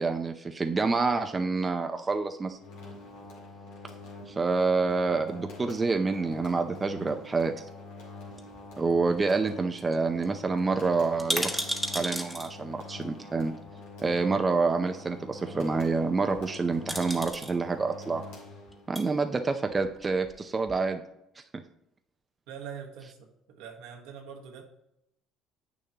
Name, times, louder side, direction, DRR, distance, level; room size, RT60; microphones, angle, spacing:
voice 1, 0.0-2.6 4.3-7.5 8.8-11.5 11.9-13.5 14.0-18.2 18.9-21.0, right 4 dB, 25° right, 6 dB, 0.6 m, -27 dB
sound 1, 2.6-19.0, left 3 dB, 85° left, 2.1 m, -46 dB
sound 2, 8.4-9.2 9.5-9.6 9.8-9.9 10.2-10.3 11.0-12.5 13.7-13.8 16.3-16.6 16.9-17.5 18.7-19.1 19.7-20.4 20.7-20.8, equal, 5° left, 1.3 m, -33 dB
voice 2, 22.5-24.6, right 7 dB, 80° right, 2 dB, 1.3 m, -43 dB
8.5 x 6.5 x 2.9 m, 0.81 s
supercardioid pair, 75°, 0 cm